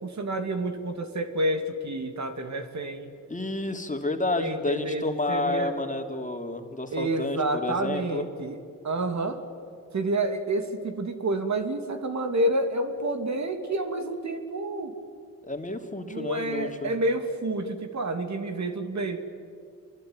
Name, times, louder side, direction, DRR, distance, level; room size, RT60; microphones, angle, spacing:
voice 1, 0.0-3.1 4.4-5.8 6.9-8.6 8.8-9.4 9.9-15.0 16.0-19.2, right 2 dB, 55° right, 6 dB, 2.8 m, -29 dB
voice 2, 3.3-8.3 15.5-16.9, left 2 dB, 20° left, 4 dB, 3.0 m, -30 dB
28.0 x 22.5 x 9.1 m, 2.4 s
cardioid pair, 60°, 34 cm